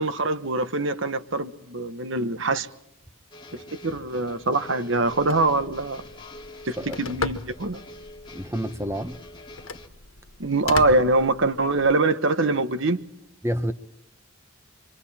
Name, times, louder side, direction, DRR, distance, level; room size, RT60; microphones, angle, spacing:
voice 1, 0.0-2.7 3.5-6.0 6.6-7.8 10.4-13.0, right 2 dB, 60° right, 1.2 m, -24 dB
sound 1, 3.3-9.9, left 1 dB, 25° left, 1.8 m, -45 dB
Telephone, 5.0-11.9, left 3 dB, 80° left, 1.4 m, -37 dB
voice 2, 8.3-9.2 13.4-13.7, equal, 15° right, 1.0 m, -28 dB
27.0 x 24.5 x 4.3 m
head